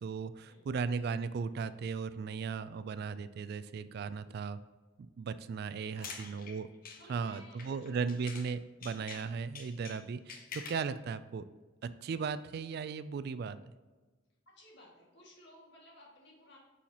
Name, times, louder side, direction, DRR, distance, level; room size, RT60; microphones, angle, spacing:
voice 1, 0.0-4.6 5.2-6.7 7.1-11.5 11.8-13.6, right 5 dB, 55° right, 13 dB, 0.3 m, -37 dB
sound 1, 5.8-8.5 8.8-10.9, left 5 dB, 45° left, 0.7 m, -47 dB
voice 2, 7.0-8.2 14.5-16.6, left 1 dB, 65° left, -3 dB, 2.1 m, -57 dB
7.1 x 5.6 x 2.9 m, 1.3 s
head